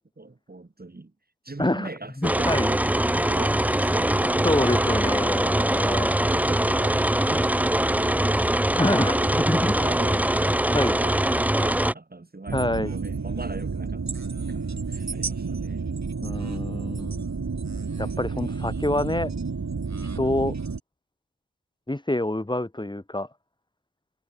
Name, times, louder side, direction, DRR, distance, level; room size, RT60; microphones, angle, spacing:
voice 1, 0.2-1.1 1.4-5.1 6.2-15.8 16.7-17.0, right 2 dB, 30° right, 1.9 m, -40 dB
voice 2, 2.2-2.7 4.4-6.1 8.8-9.7 10.7-10.9 12.5-12.9 16.2-17.5 18.0-19.3 20.1-20.5 21.9-23.3, left 1 dB, 15° left, 1.5 m, -26 dB
sound 1, 2.2-11.9, right 1 dB, 5° right, 0.5 m, -22 dB
sound 2, 12.5-20.8, right 4 dB, 55° right, 2.7 m, -30 dB
wide cardioid pair, 80°, 33 cm